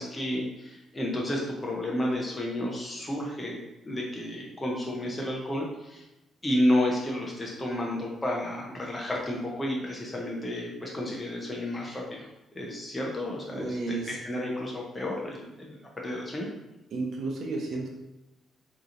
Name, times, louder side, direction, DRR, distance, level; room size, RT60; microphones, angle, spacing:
voice 1, 0.0-6.0 6.4-16.5, left 1 dB, 20° left, -2 dB, 0.7 m, -31 dB
voice 2, 13.5-14.2 16.9-17.9, right 3 dB, 60° right, 0 dB, 0.8 m, -32 dB
3.8 x 3.0 x 2.6 m, 0.97 s
cardioid pair, 90°, 0 cm